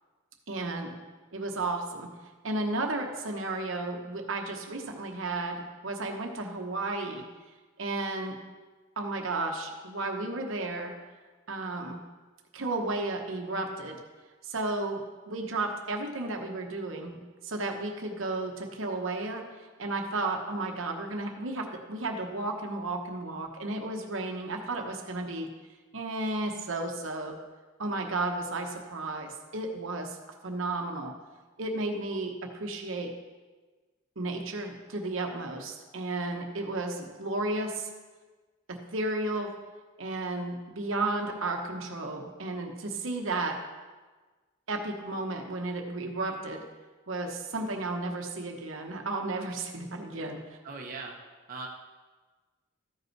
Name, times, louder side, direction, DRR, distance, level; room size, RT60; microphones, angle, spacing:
voice 1, 0.5-1.0 1.3-2.1 2.4-7.3 7.8-8.4 9.0-10.9 11.5-12.0 12.5-14.0 14.4-25.5 25.9-27.4 27.8-30.2 30.4-31.1 31.6-33.1 34.2-37.9 38.7-39.5 40.0-43.6 44.7-46.6 47.1-50.6, right 2 dB, 65° right, 3 dB, 1.0 m, -33 dB
voice 2, 50.6-51.2 51.5-51.7, right 3 dB, 45° right, -1 dB, 0.9 m, -39 dB
13.5 x 5.3 x 4.6 m, 1.3 s
head